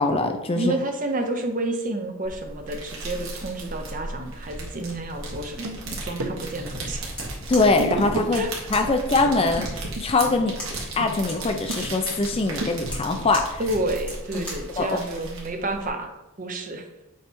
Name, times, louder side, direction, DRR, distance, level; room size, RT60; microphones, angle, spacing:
voice 1, 0.0-0.7 7.5-8.4 8.7-9.7 10.0-13.6 14.3-14.5 14.8-15.0, left 3 dB, 25° left, 5 dB, 0.4 m, -22 dB
voice 2, 0.6-7.1 8.4-8.5 13.6-16.1 16.4-16.9, right 1 dB, 40° right, 4 dB, 0.8 m, -30 dB
sound 1, 2.2-15.9, right 2 dB, 65° right, 1.6 m, -36 dB
sound 2, 5.3-6.7 7.7-8.4 8.7-8.9 9.3-13.3, right 2 dB, 85° right, 0.9 m, -34 dB
sound 3, 7.0-14.8, equal, 5° left, 1.5 m, -40 dB
8.2 x 3.2 x 4.5 m, 0.93 s
head